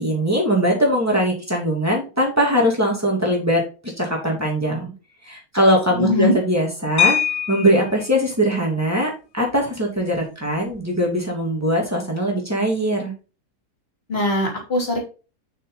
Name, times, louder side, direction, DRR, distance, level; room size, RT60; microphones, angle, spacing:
voice 1, 0.0-4.9 5.2-7.2 7.5-13.1, equal, 10° right, -1 dB, 2.8 m, -21 dB
voice 2, 6.0-6.3 14.1-15.0, left 1 dB, 40° left, -1 dB, 3.3 m, -21 dB
sound 1, 7.0-8.1 9.5-9.6 10.0-10.2 10.5-10.8, left 9 dB, 60° left, 1.3 m, -22 dB
6.7 x 6.3 x 4.0 m, 0.33 s
omnidirectional pair, 1.7 m